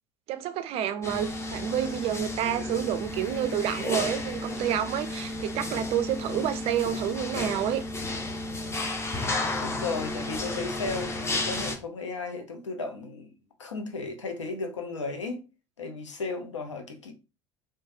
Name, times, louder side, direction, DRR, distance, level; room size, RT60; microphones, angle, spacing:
voice 1, 0.3-7.8, right 10 dB, 40° right, 0.4 m, -29 dB
sound 1, 1.0-11.8, left 2 dB, 20° left, 0.6 m, -32 dB
voice 2, 9.6-13.3 13.6-15.4 15.8-17.1, left 3 dB, 80° left, 0.6 m, -35 dB
3.1 x 2.2 x 2.5 m
figure-of-eight pair, 70°, 15 cm